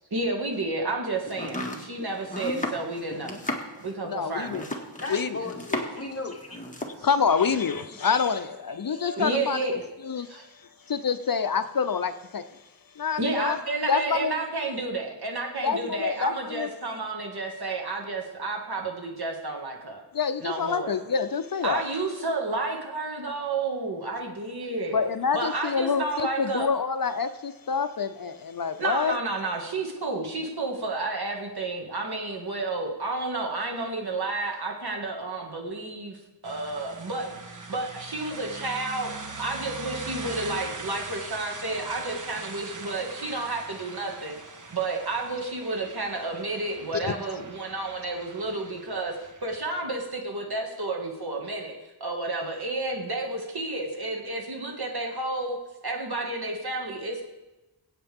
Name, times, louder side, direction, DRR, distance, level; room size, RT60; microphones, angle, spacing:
voice 1, 0.1-3.3 3.8-4.6 8.9-9.8 10.3-10.4 13.2-20.0 20.4-20.9 21.6-25.0 25.3-26.7 28.8-36.2 36.4-39.1 39.4-44.4 44.7-51.7 52.0-55.6 55.8-57.2, right 2 dB, 60° right, 1 dB, 2.1 m, -31 dB
Domestic sounds home sounds, 1.3-6.1 6.4-7.0, left 1 dB, 20° left, 1.8 m, -34 dB
voice 2, 2.0-2.7 3.1-3.4 5.0-6.6 7.9-8.0, left 3 dB, 35° left, 2 dB, 1.6 m, -37 dB
voice 3, 4.0-4.6 5.1-5.4 7.0-9.6 10.0-12.6 12.9-13.6 13.9-14.4 15.6-16.7 20.1-21.8 24.9-29.2 46.9-47.1, left 6 dB, 55° left, 11 dB, 0.6 m, -27 dB
sound 1, 36.4-49.8, right 3 dB, 45° right, 1.3 m, -41 dB
22.0 x 8.8 x 3.6 m, 1.1 s
wide cardioid pair, 75°, 42 cm